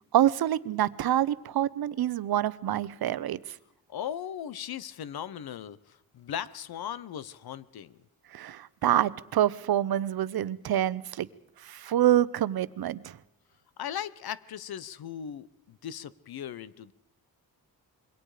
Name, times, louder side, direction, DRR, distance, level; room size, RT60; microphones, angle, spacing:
voice 1, 0.1-3.4 8.3-11.3 11.6-13.2, right 12 dB, 75° right, 17 dB, 0.8 m, -26 dB
voice 2, 3.9-8.0 13.8-16.9, left 9 dB, 75° left, 18 dB, 1.0 m, -38 dB
26.5 x 23.0 x 5.0 m, 0.76 s
wide cardioid pair, 145°, 37 cm